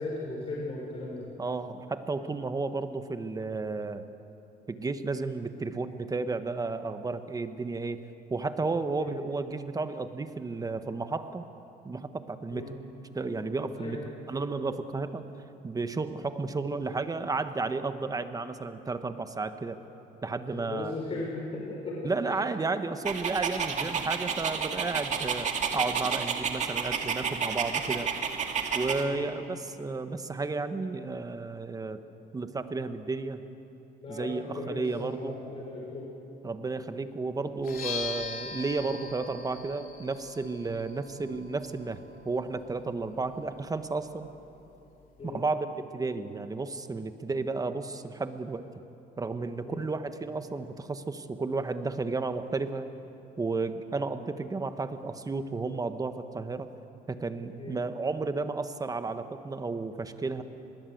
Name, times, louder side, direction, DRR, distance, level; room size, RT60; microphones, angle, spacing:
voice 1, 0.0-1.3 9.0-9.1 12.5-12.7 13.8-14.1 20.3-22.4 23.8-23.9 29.0-29.2 34.0-36.1 45.2-45.4 49.6-49.8 57.6-57.8, left 2 dB, 35° left, -3 dB, 5.6 m, -37 dB
voice 2, 1.4-4.0 4.7-8.0 8.3-11.4 11.8-12.6 13.1-14.0 14.3-15.2 15.6-19.8 20.2-20.9 22.0-28.1 28.7-32.0 32.3-33.4 34.1-35.4 36.4-42.0 42.2-44.3 45.2-48.6 49.2-52.9 53.4-56.7 57.1-60.4, right 3 dB, 20° right, 9 dB, 1.3 m, -32 dB
Dog, 23.0-29.0, right 6 dB, 45° right, 2.3 m, -31 dB
sound 1, 37.6-45.3, left 5 dB, 55° left, 3.3 m, -42 dB
25.5 x 21.0 x 7.9 m, 2.9 s
cardioid pair, 110°, 17 cm